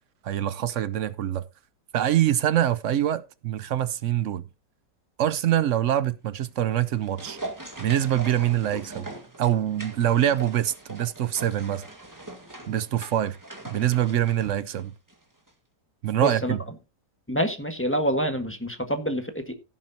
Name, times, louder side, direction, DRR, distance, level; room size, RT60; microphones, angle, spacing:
voice 1, 0.2-1.4 1.9-4.4 5.2-7.4 7.8-9.1 9.4-11.8 12.7-13.4 13.7-14.9 16.0-16.6, right 11 dB, 65° right, 0.8 m, -24 dB
sound 1, 6.6-15.2 15.5-15.6, right 2 dB, 10° right, 1.7 m, -41 dB
voice 2, 16.2-16.5 17.3-19.5, equal, 10° left, 1.3 m, -27 dB
16.5 x 7.5 x 2.8 m
omnidirectional pair, 1.8 m